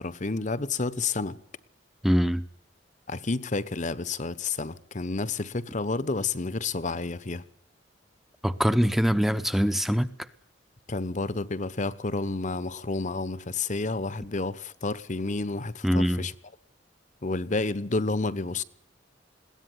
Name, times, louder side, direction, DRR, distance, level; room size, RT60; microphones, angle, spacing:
voice 1, 0.0-1.4 3.1-7.4 10.9-16.3 17.2-18.6, left 3 dB, 40° left, 1.1 m, -30 dB
voice 2, 2.0-2.4 8.4-10.1 15.8-16.3, equal, ahead, 0.9 m, -23 dB
21.5 x 17.5 x 9.3 m
head